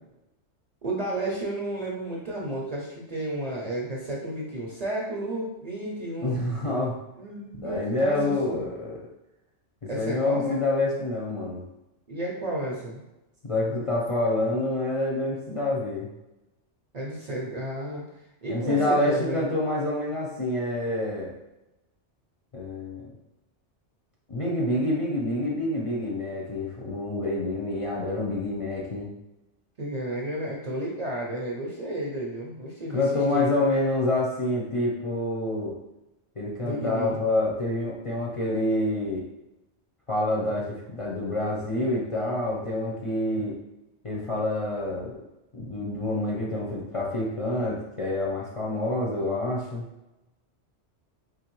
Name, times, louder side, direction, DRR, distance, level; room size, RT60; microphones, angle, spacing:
voice 1, 0.8-6.4 7.2-8.7 9.9-10.6 12.1-13.0 16.9-18.0 18.4-19.5 29.8-33.0 33.3-33.5 36.6-37.2, right 1 dB, 45° right, -3 dB, 0.6 m, -32 dB
voice 2, 6.2-7.0 7.6-9.0 9.9-11.6 13.4-16.1 18.5-21.3 22.5-23.1 24.3-29.1 32.9-35.8 36.4-39.2 40.1-43.6 44.0-45.2 45.5-49.8, left 1 dB, 40° left, -5 dB, 0.5 m, -27 dB
3.8 x 3.0 x 3.0 m, 0.95 s
omnidirectional pair, 1.2 m